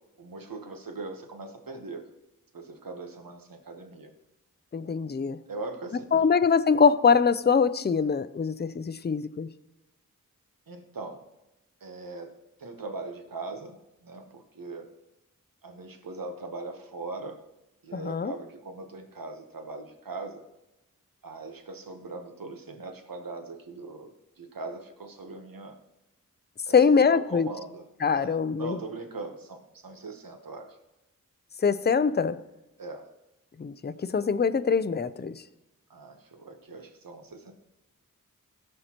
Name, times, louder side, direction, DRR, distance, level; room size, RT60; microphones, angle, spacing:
voice 1, 0.2-2.1 2.5-4.1 5.5-6.3 10.7-11.2 11.8-14.9 15.6-17.4 17.8-20.4 21.2-25.8 26.7-27.8 28.1-30.8 32.8-33.1 35.9-37.5, right 3 dB, 80° right, 5 dB, 1.1 m, -40 dB
voice 2, 4.7-5.4 6.1-9.5 17.9-18.3 26.7-27.5 28.0-28.8 31.6-32.4 33.6-35.4, left 5 dB, 30° left, 13 dB, 0.5 m, -23 dB
16.5 x 6.5 x 3.0 m, 0.97 s
wide cardioid pair, 40°, 34 cm